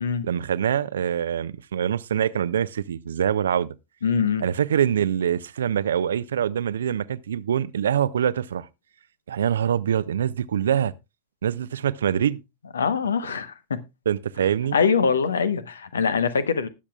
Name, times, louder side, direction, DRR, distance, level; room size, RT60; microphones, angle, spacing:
voice 1, 0.2-3.7 4.4-8.7 9.3-10.9 11.4-12.4 14.1-14.8, right 9 dB, 65° right, 0.5 m, -24 dB
voice 2, 4.0-4.4 12.7-13.8 14.7-16.7, left 6 dB, 70° left, 0.9 m, -23 dB
20.0 x 7.3 x 2.3 m
figure-of-eight pair, 90°, 0 cm